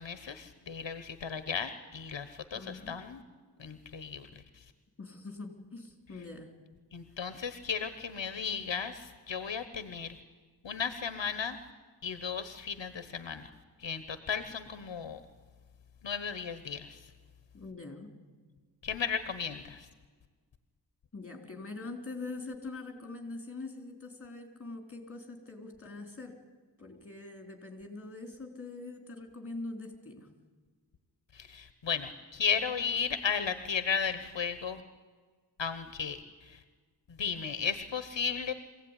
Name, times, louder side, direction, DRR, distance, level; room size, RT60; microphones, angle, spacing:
voice 1, 0.0-3.2 3.6-4.3 6.9-10.2 10.6-11.6 12.0-13.5 13.8-15.2 16.0-17.0 18.8-19.9 31.3-34.8 35.6-36.6 37.2-38.5, left 6 dB, 80° left, 11 dB, 1.2 m, -35 dB
voice 2, 2.5-3.0 5.0-6.6 17.5-18.1 21.1-26.4 26.8-30.3, left 3 dB, 30° left, 5 dB, 3.9 m, -43 dB
24.0 x 16.5 x 9.9 m, 1.5 s
wide cardioid pair, 95°, 44 cm